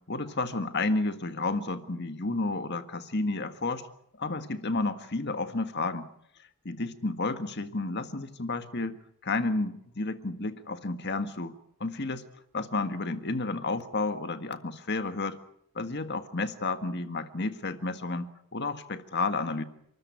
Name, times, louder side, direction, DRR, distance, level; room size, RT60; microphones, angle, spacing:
voice 1, 0.1-3.9 4.2-6.1 6.7-9.0 9.2-11.5 11.8-12.2 12.5-15.4 15.8-19.6, left 3 dB, 50° left, 9 dB, 1.7 m, -31 dB
29.0 x 14.0 x 9.6 m, 0.75 s
head